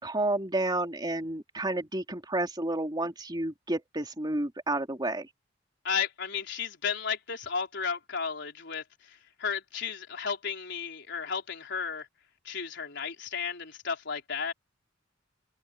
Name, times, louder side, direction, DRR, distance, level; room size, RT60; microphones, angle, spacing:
voice 1, 0.0-5.3, right 2 dB, 20° right, 3.3 m, -30 dB
voice 2, 5.8-12.1 12.4-14.5, left 6 dB, 65° left, 4.4 m, -33 dB
head